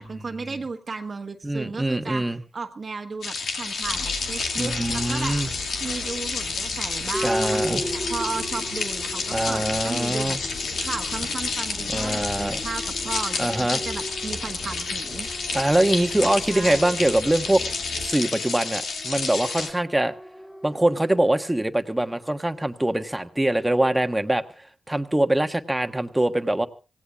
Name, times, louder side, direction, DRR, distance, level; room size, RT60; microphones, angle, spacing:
voice 1, 0.0-2.2 2.5-5.3 5.8-10.4 10.8-15.3 16.5-17.0, right 4 dB, 50° right, 3 dB, 1.3 m, -34 dB
voice 2, 1.4-2.4 4.6-5.5 7.2-7.8 9.3-10.4 11.9-12.6 13.4-13.8 15.5-17.6 18.0-20.1 20.6-24.4 24.9-26.7, right 1 dB, 10° right, 7 dB, 1.3 m, -23 dB
sound 1, 3.2-19.7, left 4 dB, 90° left, 2.4 m, -30 dB
sound 2, 3.8-18.1, left 2 dB, 70° left, 6.2 m, -40 dB
sound 3, 7.1-21.3, equal, 10° left, 0.9 m, -38 dB
26.0 x 17.5 x 2.5 m, 0.33 s
cardioid pair, 70°, 0 cm